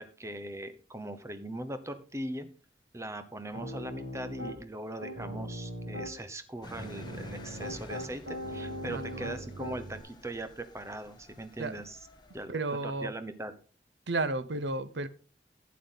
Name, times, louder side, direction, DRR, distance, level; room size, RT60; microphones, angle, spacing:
voice 1, 0.0-2.5 2.9-12.0 12.3-12.5 12.8-13.5, right 1 dB, 15° right, 0.9 m, -40 dB
Piano, 3.5-4.6 5.0-6.1 6.8-10.0, equal, 60° right, 5.3 m, -40 dB
Engine, 6.6-12.5, left 1 dB, 25° left, 1.1 m, -49 dB
voice 2, 8.9-9.3 11.6-11.8 12.5-13.1 14.1-15.1, right 2 dB, 90° right, 0.8 m, -33 dB
11.5 x 8.5 x 3.9 m
head